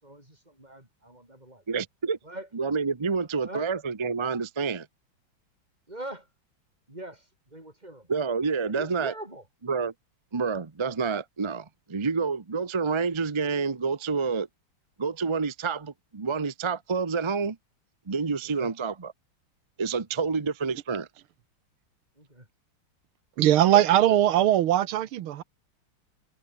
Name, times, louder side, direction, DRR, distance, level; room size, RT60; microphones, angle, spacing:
voice 1, 0.0-1.6 2.2-2.5 3.4-3.7 5.9-6.3 6.9-8.1 8.6-9.4 18.4-18.7 22.2-22.5 24.1-24.5, right 1 dB, 20° right, 7.2 m, -43 dB
voice 2, 1.7-2.2 2.5-4.9 8.1-9.1 9.7-9.9 10.3-14.5 15.0-17.6 18.1-19.1 19.8-21.1, right 5 dB, 40° right, 0.4 m, -28 dB
voice 3, 23.4-25.4, right 12 dB, 85° right, 1.9 m, -20 dB
omnidirectional pair, 2.3 m